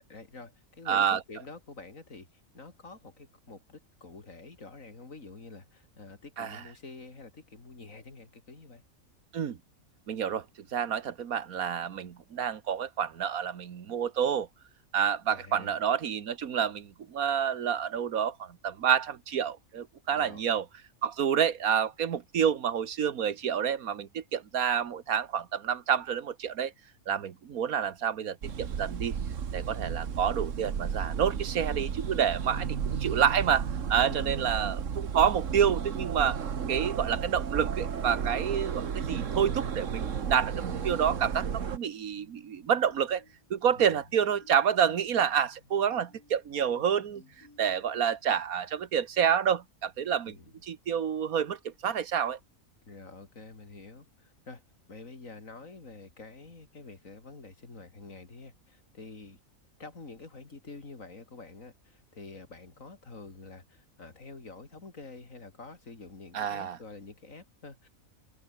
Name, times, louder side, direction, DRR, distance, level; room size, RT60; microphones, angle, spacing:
voice 1, 0.1-8.8 15.3-15.7 20.1-20.6 32.5-32.8 34.1-34.5 43.8-44.0 50.3-50.5 52.9-54.6 54.9-59.4 59.8-67.9, left 3 dB, 65° left, 3.7 m, -47 dB
voice 2, 0.9-1.2 6.4-6.6 9.3-9.6 10.1-10.4 10.7-14.5 14.9-20.6 21.0-26.7 27.1-29.1 29.5-43.2 43.5-47.2 47.6-50.3 50.6-52.4 66.3-66.8, right 8 dB, 80° right, 1.7 m, -28 dB
sound 1, 28.4-41.8, right 7 dB, 60° right, 1.6 m, -33 dB
sound 2, 42.2-48.1, left 2 dB, 85° left, 5.6 m, -60 dB
open air
omnidirectional pair, 1.5 m